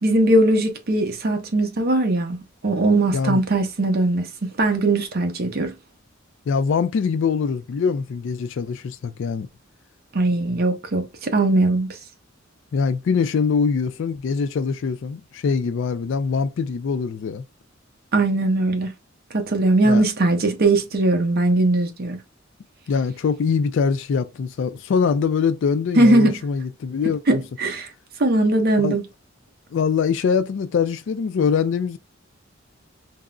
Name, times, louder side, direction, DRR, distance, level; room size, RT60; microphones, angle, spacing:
voice 1, 0.0-2.4 2.6-4.3 4.6-5.7 10.1-11.9 18.1-18.9 19.3-22.2 26.0-26.4 27.3-27.9 28.2-29.0, right 2 dB, 50° right, 0.6 m, -19 dB
voice 2, 6.5-9.5 12.7-17.4 19.8-20.0 22.9-27.4 28.8-29.0 29.7-32.0, left 5 dB, 65° left, 0.3 m, -23 dB
3.6 x 2.0 x 2.2 m
head